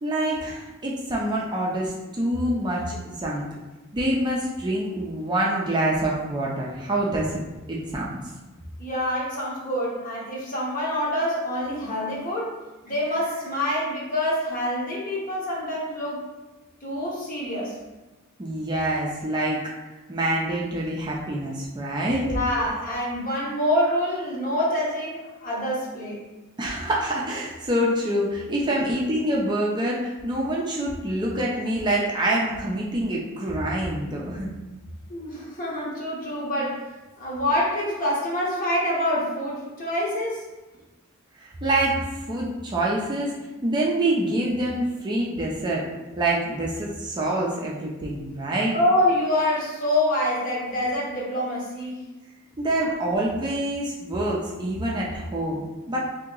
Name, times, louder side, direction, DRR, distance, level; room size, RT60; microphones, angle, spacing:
voice 1, 0.0-3.4 3.9-7.4 7.7-8.2 18.4-19.7 20.1-22.3 26.6-34.5 41.4-43.3 43.6-45.9 46.2-48.7 52.6-56.0, right 1 dB, 20° right, -3 dB, 0.4 m, -26 dB
voice 2, 8.8-12.6 12.8-16.2 16.8-17.8 22.2-26.2 35.1-36.8 37.2-40.4 48.7-52.1 52.8-52.9, left 1 dB, 40° left, -4 dB, 1.0 m, -26 dB
2.8 x 2.8 x 3.7 m, 1.1 s
head